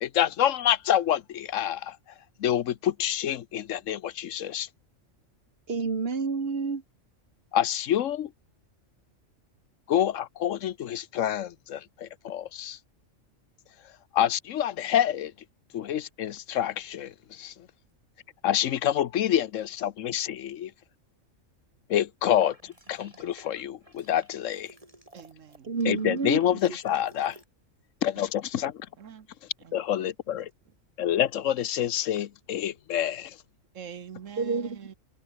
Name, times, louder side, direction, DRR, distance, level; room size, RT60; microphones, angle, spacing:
voice 1, 0.0-2.0 2.4-4.7 7.5-8.3 9.9-12.8 14.1-15.3 15.7-17.5 18.4-20.7 21.9-24.7 25.9-27.4 28.0-28.9 29.7-30.5 31.0-33.3, left 10 dB, 75° left, 1.1 m, -27 dB
voice 2, 5.7-6.8 25.6-26.4 26.7-26.8 34.4-34.8, right 4 dB, 50° right, 1.9 m, -29 dB
sound 1, 22.3-27.4, right 1 dB, 25° right, 5.8 m, -54 dB
voice 3, 25.1-25.7 28.2-28.3 28.6-28.7 29.0-29.3 29.6-30.1 33.7-34.9, right 7 dB, 75° right, 1.5 m, -45 dB
omnidirectional pair, 1.3 m